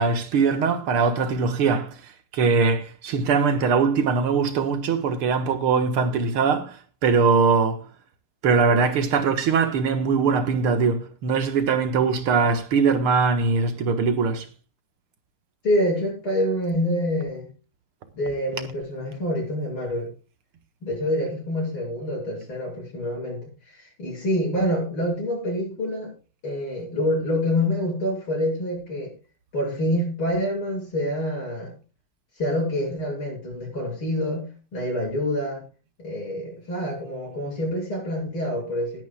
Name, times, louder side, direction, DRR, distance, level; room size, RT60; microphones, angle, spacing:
voice 1, 0.0-1.9 2.3-6.7 7.0-7.8 8.4-14.4, right 5 dB, 85° right, 2.4 m, -21 dB
voice 2, 15.6-17.5 18.1-20.1 20.8-26.1 26.4-29.1 29.5-31.7 32.4-35.6 36.0-39.0, left 1 dB, 70° left, 8.7 m, -26 dB
19.5 x 10.5 x 2.4 m
omnidirectional pair, 2.4 m